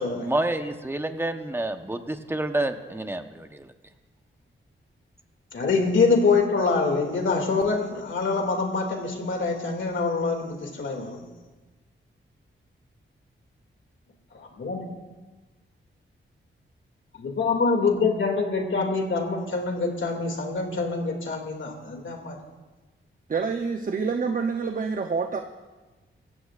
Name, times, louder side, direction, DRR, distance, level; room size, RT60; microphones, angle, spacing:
voice 1, 0.0-3.6, right 1 dB, 10° right, 7 dB, 0.9 m, -29 dB
voice 2, 5.5-11.2 14.3-14.9 17.1-22.4, left 4 dB, 70° left, 2 dB, 2.4 m, -25 dB
voice 3, 23.3-25.4, right 5 dB, 40° right, 5 dB, 0.7 m, -27 dB
25.5 x 15.0 x 2.5 m, 1.2 s
wide cardioid pair, 115°, 21 cm